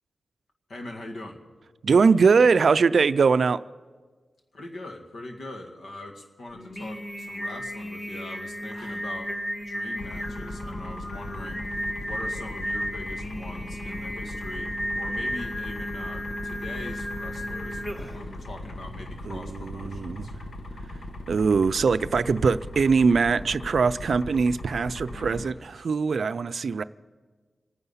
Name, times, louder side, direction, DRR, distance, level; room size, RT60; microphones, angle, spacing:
voice 1, 0.7-1.4 4.5-9.3 9.6-11.7 12.0-20.3 25.1-25.9, left 2 dB, 80° left, 1.9 m, -42 dB
voice 2, 1.8-3.6 19.3-20.3 21.3-26.8, right 5 dB, 70° right, 0.4 m, -22 dB
Singing, 6.5-18.3, equal, 20° left, 1.6 m, -34 dB
sound 1, 10.0-25.5, left 1 dB, 65° left, 1.1 m, -39 dB
26.5 x 9.7 x 5.6 m
cardioid pair, 70°, 0 cm